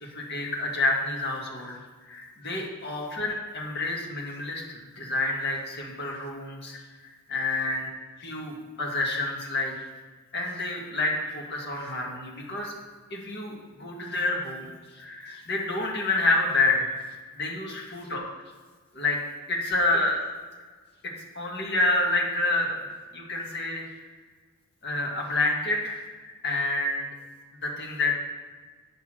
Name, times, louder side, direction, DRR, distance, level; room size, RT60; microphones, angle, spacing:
voice 1, 0.0-7.9 8.2-9.7 10.3-12.7 13.1-16.9 17.3-18.3 18.9-19.2 19.5-20.2 21.0-22.8 23.1-23.8 24.8-27.1 27.6-28.1, left 2 dB, 50° left, -1 dB, 2.0 m, -28 dB
8.5 x 6.0 x 6.2 m, 1.4 s
head